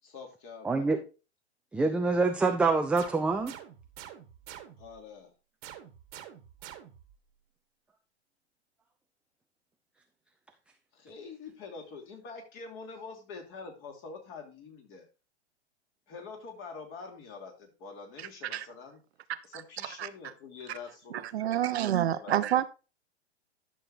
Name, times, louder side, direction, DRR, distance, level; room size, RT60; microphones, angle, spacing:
voice 1, 0.0-0.9 4.8-5.3 10.9-15.1 16.1-19.0 19.4-22.4, left 4 dB, 35° left, 3 dB, 3.0 m, -46 dB
voice 2, 0.6-1.0 1.7-3.5, right 3 dB, 5° right, 4 dB, 0.4 m, -26 dB
sound 1, 3.0-5.0 5.6-7.2, right 11 dB, 40° right, 1.4 m, -48 dB
voice 3, 21.3-22.7, right 11 dB, 70° right, 12 dB, 0.8 m, -27 dB
11.5 x 6.7 x 2.6 m, 0.31 s
hypercardioid pair, 115°, 34 cm